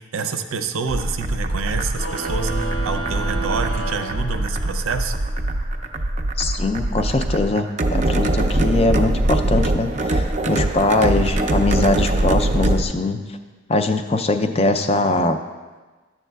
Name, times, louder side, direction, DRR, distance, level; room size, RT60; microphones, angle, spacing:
voice 1, 0.0-5.1, right 5 dB, 85° right, 8 dB, 0.6 m, -28 dB
sound 1, 0.9-12.8, right 1 dB, 35° right, 0.4 m, -22 dB
sound 2, 1.9-4.9, right 3 dB, 80° left, 1.0 m, -31 dB
Bass guitar, 2.4-6.8 7.2-8.6, right 1 dB, 20° right, 0.8 m, -39 dB
voice 2, 6.4-13.2 13.7-15.4, left 2 dB, 30° left, 8 dB, 0.4 m, -21 dB
12.0 x 7.1 x 2.3 m, 1.3 s
head